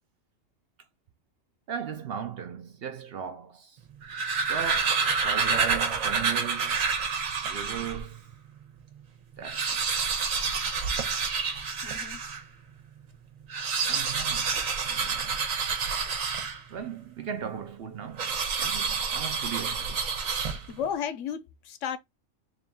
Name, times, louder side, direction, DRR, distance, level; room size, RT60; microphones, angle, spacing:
voice 1, 1.7-3.9 4.5-6.8 7.4-8.4 9.4-10.1 13.9-15.4 16.7-20.1 20.4-20.7, right 8 dB, 60° right, 0.7 m, -38 dB
sound 1, 3.9-8.1 8.6-8.7 8.9-9.0 9.3-12.5 13.4-16.9 18.2-20.9, right 5 dB, 85° right, 1.3 m, -28 dB
voice 2, 11.8-12.2 14.0-14.2 20.7-22.0, left 8 dB, 75° left, 0.9 m, -34 dB
3.7 x 2.6 x 3.4 m
omnidirectional pair, 1.4 m